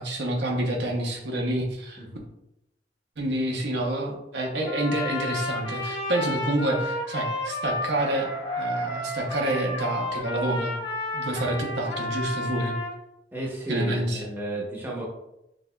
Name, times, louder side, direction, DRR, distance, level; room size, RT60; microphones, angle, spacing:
voice 1, 0.0-2.0 3.2-10.8 11.1-12.8 13.7-14.2, right 1 dB, 70° right, 0 dB, 0.7 m, -28 dB
Trumpet, 4.6-13.0, left 2 dB, 85° left, 1.1 m, -32 dB
voice 2, 13.3-15.1, right 1 dB, 10° right, -4 dB, 0.8 m, -33 dB
5.9 x 2.6 x 2.2 m, 0.86 s
head